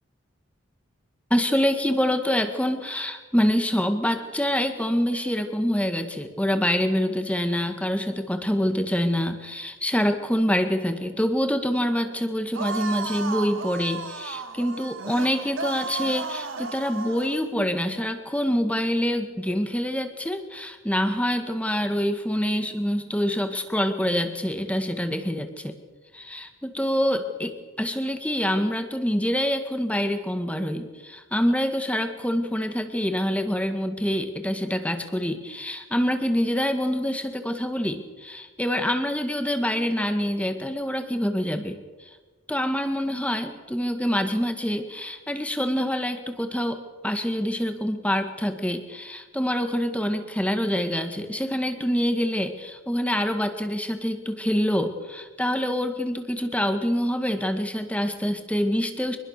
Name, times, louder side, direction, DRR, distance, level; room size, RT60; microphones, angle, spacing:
voice 1, 1.3-25.8 26.1-42.2 42.5-59.2, equal, 5° left, 7 dB, 1.8 m, -26 dB
sound 1, 12.5-17.4, right 4 dB, 80° right, 1.8 m, -33 dB
25.5 x 21.0 x 6.7 m, 1.3 s
head